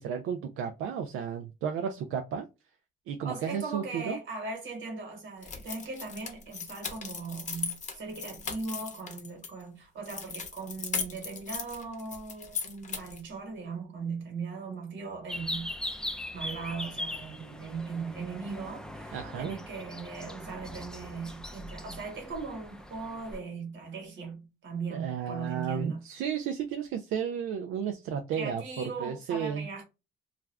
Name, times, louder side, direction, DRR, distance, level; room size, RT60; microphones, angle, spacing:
voice 1, 0.0-2.5 3.1-4.2 19.1-19.6 24.9-29.7, right 7 dB, 85° right, 0.4 m, -33 dB
voice 2, 3.2-26.0 28.3-29.8, right 4 dB, 70° right, 1.3 m, -39 dB
sound 1, 5.4-9.5 10.0-13.3, left 5 dB, 40° left, 0.7 m, -38 dB
sound 2, 15.3-23.4, left 1 dB, 5° left, 0.4 m, -40 dB
2.4 x 2.2 x 3.2 m
cardioid pair, 90°, 20 cm